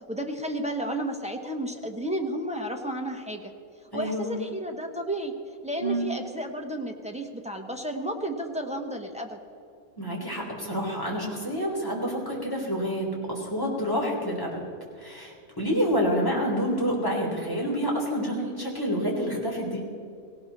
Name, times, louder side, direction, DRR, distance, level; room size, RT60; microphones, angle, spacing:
voice 1, 0.1-3.5 3.9-5.3 5.6-9.4, right 1 dB, 5° right, 2 dB, 1.1 m, -32 dB
voice 2, 3.9-4.3 5.8-6.1 10.0-14.6 15.0-19.8, equal, 15° left, -3 dB, 3.7 m, -28 dB
18.0 x 17.0 x 4.2 m, 2.5 s
omnidirectional pair, 1.6 m